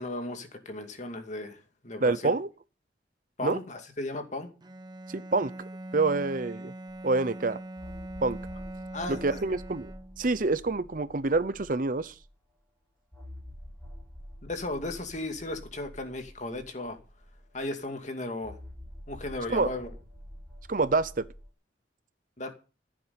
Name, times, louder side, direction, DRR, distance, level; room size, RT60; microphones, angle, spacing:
voice 1, 0.0-2.1 3.4-4.5 8.9-9.4 14.4-17.0 17.5-18.6 19.1-19.9 22.4-22.5, left 2 dB, 40° left, 2.4 m, -36 dB
voice 2, 2.0-2.5 3.4-3.6 5.1-5.5 5.9-6.7 7.0-7.6 8.2-8.4 9.1-9.9 10.2-12.1 19.5-19.7 20.7-21.2, right 3 dB, 50° right, 0.8 m, -27 dB
Bowed string instrument, 4.6-10.4, right 1 dB, 25° right, 1.0 m, -42 dB
sound 1, 6.9-7.0 7.8-12.3 13.1-17.8 18.4-21.5, equal, 5° left, 3.7 m, -47 dB
15.0 x 8.7 x 7.0 m
head